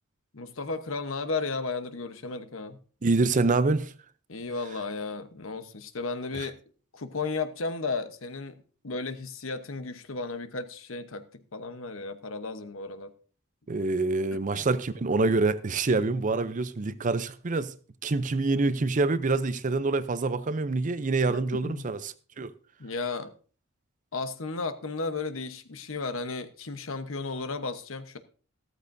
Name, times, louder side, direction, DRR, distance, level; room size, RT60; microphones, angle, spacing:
voice 1, 0.3-2.8 4.3-6.6 6.9-8.6 8.8-13.1 14.5-14.7 21.3-21.9 22.8-23.3 24.1-28.2, left 3 dB, 70° left, 1.0 m, -34 dB
voice 2, 3.0-3.9 6.3-6.5 13.7-17.7 18.0-22.5, right 3 dB, 40° right, 0.5 m, -26 dB
14.5 x 13.5 x 2.7 m
head